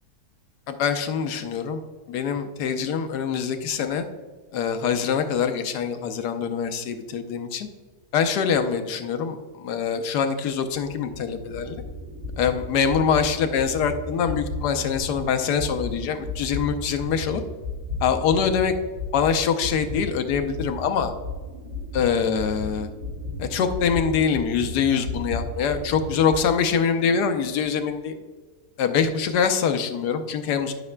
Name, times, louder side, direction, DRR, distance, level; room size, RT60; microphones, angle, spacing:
voice 1, 0.7-1.8 2.1-4.0 4.5-7.7 8.1-11.8 12.4-17.4 18.0-18.7 19.1-21.1 21.9-22.9 23.4-28.1 28.8-30.7, left 6 dB, 85° left, 8 dB, 1.3 m, -24 dB
sound 1, 10.9-18.7 19.0-26.5, left 2 dB, 90° right, 2.5 m, -34 dB
12.0 x 5.9 x 2.2 m, 1.4 s
omnidirectional pair, 1.7 m